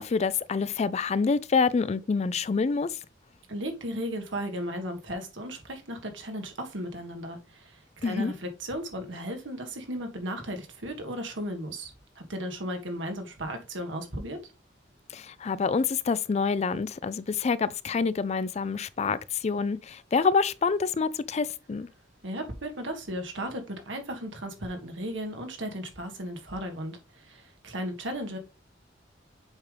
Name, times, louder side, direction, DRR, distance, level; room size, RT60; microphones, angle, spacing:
voice 1, 0.0-3.0 8.0-8.3 15.1-21.9, left 5 dB, 35° left, 0.4 m, -27 dB
voice 2, 3.5-14.4 22.2-28.4, equal, 80° right, 1.6 m, -35 dB
7.2 x 5.2 x 3.3 m
head